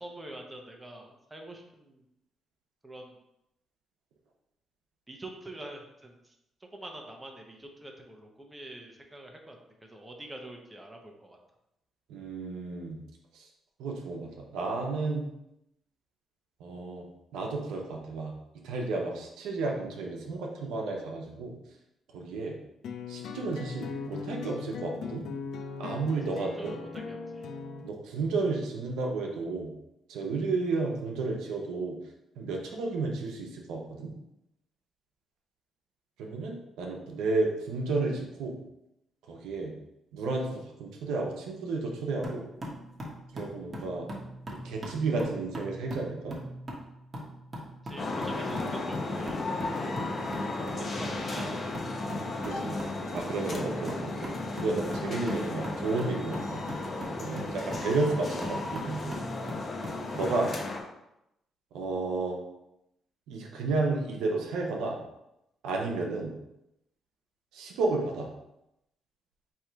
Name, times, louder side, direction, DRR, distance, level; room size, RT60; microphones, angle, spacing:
voice 1, 0.0-2.0 2.8-3.2 5.1-6.3 6.7-11.4 26.3-27.5 47.8-49.4 50.5-52.0, right 1 dB, 15° right, 2 dB, 0.8 m, -45 dB
voice 2, 12.1-13.0 13.3-13.4 13.8-15.3 16.6-17.0 17.3-18.3 18.6-21.6 22.1-22.5 23.1-25.2 25.8-26.8 27.8-29.7 30.1-32.0 32.4-34.1 36.2-38.6 39.3-39.7 40.1-42.5 43.3-44.1 44.6-46.4 49.6-49.7 52.4-52.8 53.1-54.3 54.6-56.6 57.2-59.1 60.1-60.5 61.7-62.4 63.3-65.0 65.6-66.3 67.5-68.3, right 3 dB, 90° right, 0 dB, 0.7 m, -32 dB
sound 1, 22.8-27.9, left 5 dB, 75° left, 0.5 m, -39 dB
sound 2, 42.2-60.4, right 1 dB, 35° right, 1.1 m, -41 dB
sound 3, 48.0-60.8, left 2 dB, 40° left, 0.8 m, -35 dB
3.6 x 2.9 x 4.5 m, 0.85 s
cardioid pair, 90°, 0 cm